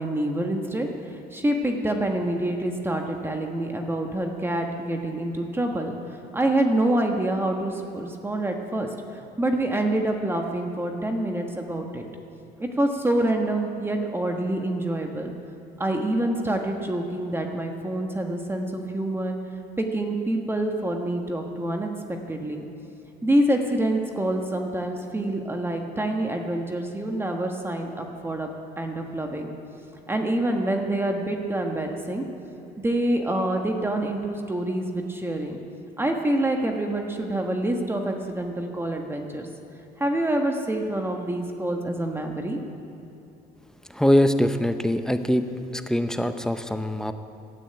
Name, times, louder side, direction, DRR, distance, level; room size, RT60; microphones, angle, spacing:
voice 1, 0.0-6.0 6.3-12.0 12.6-15.3 15.8-19.4 19.8-22.6 23.2-28.5 28.8-29.5 30.1-32.2 32.8-35.6 36.0-39.5 40.0-42.6, right 1 dB, 15° right, 3 dB, 1.3 m, -26 dB
voice 2, 43.9-45.4 45.7-47.1, left 1 dB, 5° left, 8 dB, 0.7 m, -22 dB
12.5 x 9.1 x 8.9 m, 2.8 s
cardioid pair, 110°, 17 cm